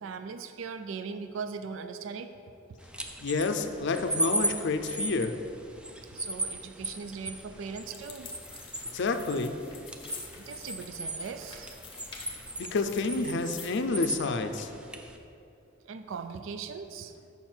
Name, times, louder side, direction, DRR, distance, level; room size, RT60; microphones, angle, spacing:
voice 1, 0.0-2.3 6.1-8.3 10.4-11.8 15.8-17.1, right 5 dB, 70° right, 9 dB, 0.4 m, -39 dB
sound 1, 2.8-15.2, right 1 dB, 5° right, 0.4 m, -37 dB
voice 2, 3.2-5.3 8.9-9.6 12.6-14.7, left 3 dB, 60° left, 8 dB, 0.5 m, -29 dB
sound 2, 7.8-13.9, left 5 dB, 30° left, 0.8 m, -48 dB
7.5 x 5.6 x 4.4 m, 2.6 s
head